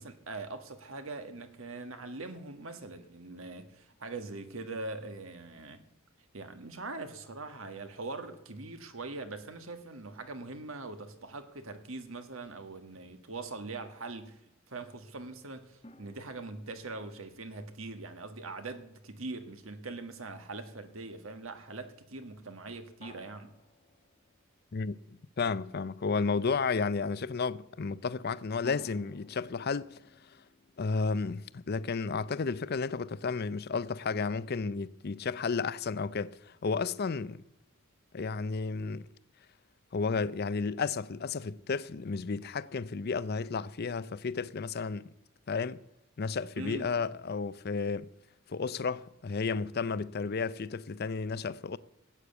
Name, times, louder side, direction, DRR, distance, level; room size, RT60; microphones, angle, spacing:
voice 1, 0.0-5.8 6.3-14.4 14.7-23.5 46.6-46.9, right 3 dB, 70° right, 1.5 m, -42 dB
sound 1, 15.8-19.2 23.0-25.0 28.6-31.7, left 1 dB, 30° left, 1.3 m, -56 dB
voice 2, 24.7-30.0 30.8-37.4 38.1-39.1 39.9-45.1 45.5-45.8 46.2-48.1 48.5-51.8, left 4 dB, 50° left, 0.5 m, -32 dB
16.0 x 8.7 x 8.1 m
head